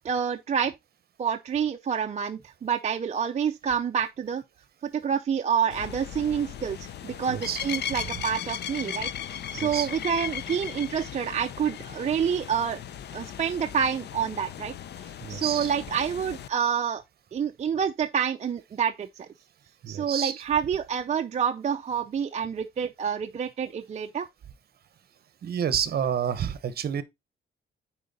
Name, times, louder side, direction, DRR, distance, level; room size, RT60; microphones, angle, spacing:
voice 1, 0.0-0.7 1.2-4.4 4.8-12.8 13.1-14.7 15.0-17.0 17.3-19.3 19.9-24.3, right 7 dB, 35° right, 0.5 m, -28 dB
sound 1, 5.7-16.5, left 9 dB, 55° left, 0.6 m, -37 dB
voice 2, 7.3-7.6 9.5-9.9 15.2-15.7 19.8-20.4 25.4-27.0, right 8 dB, 50° right, 1.0 m, -29 dB
8.8 x 4.8 x 4.0 m
cardioid pair, 150°, 20 cm